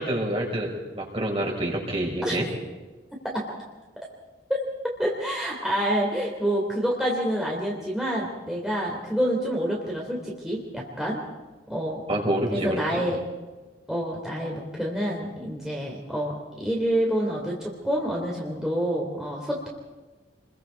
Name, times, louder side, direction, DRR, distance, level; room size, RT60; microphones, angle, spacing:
voice 1, 0.0-2.5 12.1-13.1, right 1 dB, 30° right, -1 dB, 5.5 m, -27 dB
voice 2, 5.0-11.2 11.7-12.0 12.5-13.2 13.9-19.7, equal, 5° right, -3 dB, 3.2 m, -27 dB
29.0 x 22.5 x 4.7 m, 1.3 s
head